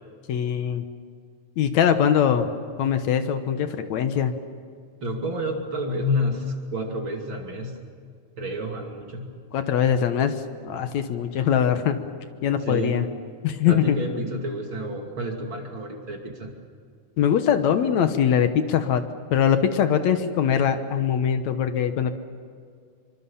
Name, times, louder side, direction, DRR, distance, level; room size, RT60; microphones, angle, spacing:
voice 1, 0.3-0.9 1.6-2.5 2.8-4.3 9.5-10.4 10.7-12.1 12.4-13.1 13.4-14.0 17.2-19.0 19.3-22.1, left 8 dB, 70° left, 9 dB, 2.3 m, -22 dB
voice 2, 5.0-7.8 8.4-9.3 12.6-13.1 13.6-16.5, left 1 dB, 40° right, 2 dB, 3.1 m, -29 dB
26.0 x 24.5 x 7.2 m, 2.2 s
omnidirectional pair, 3.5 m